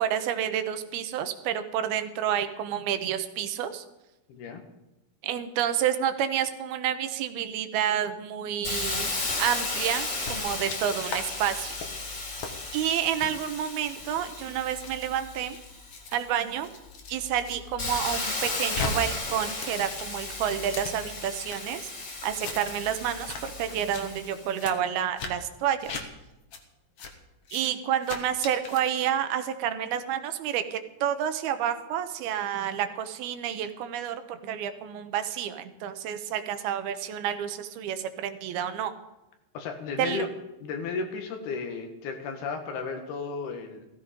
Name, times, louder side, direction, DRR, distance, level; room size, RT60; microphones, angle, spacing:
voice 1, 0.0-3.8 5.2-11.7 12.7-15.6 16.1-16.7 17.1-21.9 22.2-25.9 27.5-38.9 40.0-40.2, right 9 dB, 80° right, 9 dB, 2.9 m, -29 dB
voice 2, 4.3-4.6 39.6-40.3 40.6-43.9, left 4 dB, 80° left, 5 dB, 3.7 m, -34 dB
Hiss, 8.6-16.2 16.7-24.5, left 3 dB, 30° left, 2.9 m, -35 dB
sound 1, 10.2-10.8 11.1-11.2 11.6-11.9 12.4-12.5 13.1-13.3 14.0-17.6 17.9-18.9 19.2-21.6 22.0-22.8 23.1-23.4 23.7-24.0 24.5-24.7 25.2-25.3 25.8-26.0 26.5-26.6 27.0-27.1 27.4-27.7 28.0-28.8, left 5 dB, 55° left, 1.8 m, -39 dB
16.0 x 14.5 x 5.2 m, 0.99 s
omnidirectional pair, 4.4 m